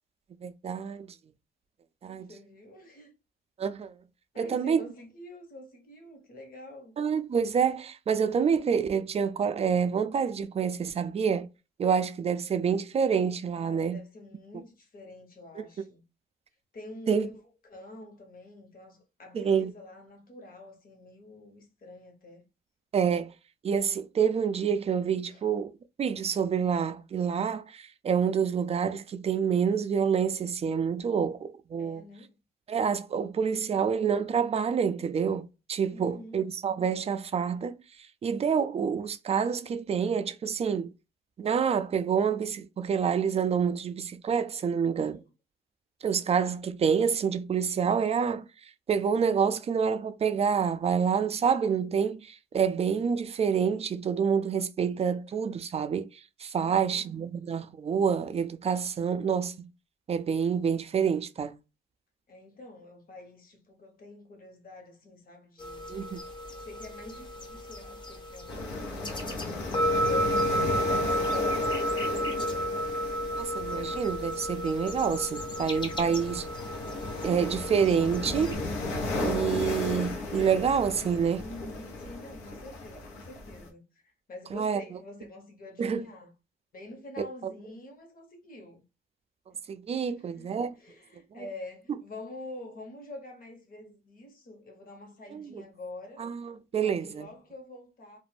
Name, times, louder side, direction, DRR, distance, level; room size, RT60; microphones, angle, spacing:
voice 1, 0.4-1.1 2.0-2.3 3.6-3.9 4.4-4.8 7.0-11.5 11.8-14.0 17.1-17.3 19.3-19.7 22.9-23.3 23.6-25.7 26.0-32.0 32.7-37.8 38.2-40.9 41.4-45.2 46.0-48.4 48.9-56.1 56.4-59.5 60.1-61.5 65.9-66.2 73.4-76.4 77.2-78.6 79.1-81.4 84.5-84.8 85.8-86.1 87.4-87.5 89.7-90.7 95.3-95.6 96.2-97.3, right 7 dB, 30° right, 0.3 m, -27 dB
voice 2, 2.1-3.1 4.3-6.9 13.5-16.0 16.7-22.4 25.3-25.4 31.8-32.3 35.9-36.4 44.8-45.2 56.6-57.1 62.3-65.9 66.5-71.6 76.0-76.4 81.4-86.3 86.7-88.8 89.5-89.6 90.0-96.3 96.7-98.2, left 2 dB, 45° left, 1.1 m, -47 dB
sound 1, 65.6-78.6, equal, 25° left, 0.7 m, -32 dB
sound 2, 68.5-83.7, left 2 dB, 85° left, 0.9 m, -35 dB
2.4 x 2.1 x 3.2 m
cardioid pair, 90°, 20 cm